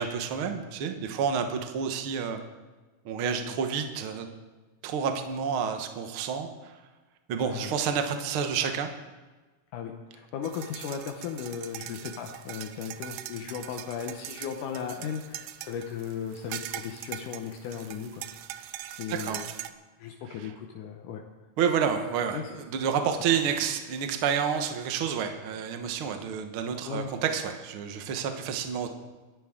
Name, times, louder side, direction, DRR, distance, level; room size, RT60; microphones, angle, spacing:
voice 1, 0.0-2.4 3.0-4.3 4.8-6.7 7.3-8.9 19.1-19.4 20.3-20.5 21.6-28.9, right 7 dB, 55° right, 5 dB, 1.6 m, -29 dB
voice 2, 3.2-3.6 7.4-7.7 9.7-18.3 18.9-19.5 20.0-21.2 22.3-22.4 26.9-27.1, left 7 dB, 80° left, 3 dB, 2.4 m, -36 dB
sound 1, 10.4-19.7, right 13 dB, 85° right, 2.1 m, -41 dB
25.5 x 10.5 x 3.7 m, 1.3 s
omnidirectional pair, 3.7 m